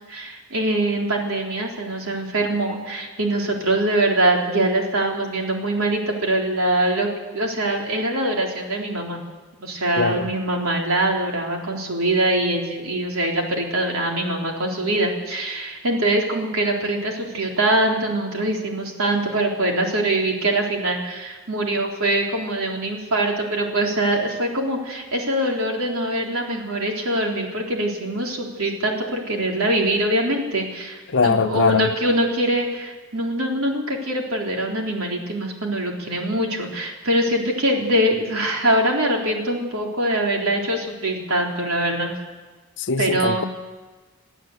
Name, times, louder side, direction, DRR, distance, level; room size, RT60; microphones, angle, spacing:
voice 1, 0.1-9.2 9.6-42.1 43.0-43.4, right 1 dB, 70° right, 3.7 m, -23 dB
voice 2, 10.0-10.3 31.1-31.9 42.8-43.4, left 4 dB, 55° left, 0.6 m, -21 dB
23.0 x 14.0 x 8.1 m
head